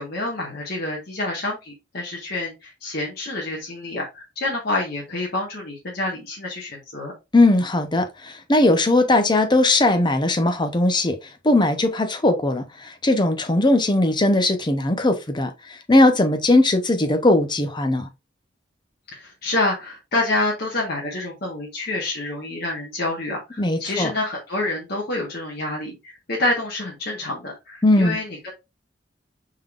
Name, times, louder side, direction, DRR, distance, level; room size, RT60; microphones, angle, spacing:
voice 1, 0.0-7.1 19.1-28.5, left 2 dB, 60° left, 1.3 m, -27 dB
voice 2, 7.3-11.2 11.4-15.5 15.9-18.1 23.6-24.1 27.8-28.2, left 2 dB, 25° left, 0.7 m, -19 dB
5.3 x 3.7 x 2.4 m
head